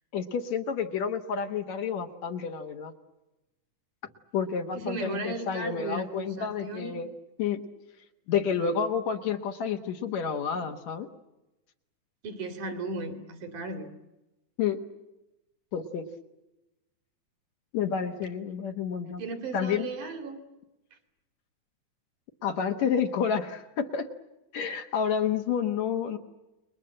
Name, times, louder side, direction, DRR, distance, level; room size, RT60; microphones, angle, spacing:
voice 1, 0.1-2.9 4.3-7.1 7.4-7.6 8.3-11.1 14.6-14.8 15.7-16.0 17.7-19.2 19.5-19.9 22.4-24.1 24.5-26.2, left 7 dB, 65° left, 4 dB, 2.5 m, -29 dB
voice 2, 4.7-7.0 12.2-13.9 19.2-20.4, right 2 dB, 85° right, 7 dB, 4.1 m, -36 dB
30.0 x 22.0 x 7.7 m, 0.98 s
omnidirectional pair, 3.5 m